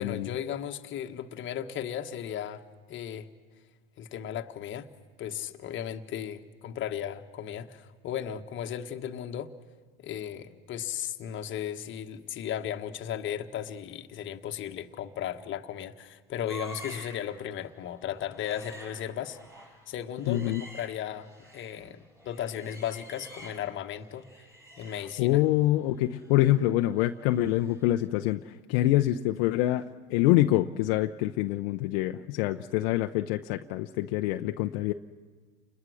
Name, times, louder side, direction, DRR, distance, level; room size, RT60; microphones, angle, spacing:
voice 1, 0.0-2.6 2.9-3.3 4.0-4.9 5.2-9.5 10.0-19.4 19.9-24.2 24.8-25.4, left 10 dB, 40° left, 6 dB, 1.5 m, -36 dB
sound 1, 16.5-17.3 17.5-17.8 18.1-21.8 22.2-23.8 24.1-27.9 28.2-28.3, right 1 dB, 10° right, 7.8 m, -49 dB
voice 2, 20.3-20.6 25.2-34.9, left 15 dB, 65° left, 6 dB, 0.8 m, -26 dB
29.5 x 21.5 x 6.4 m, 1.5 s
supercardioid pair, 105°, 30 cm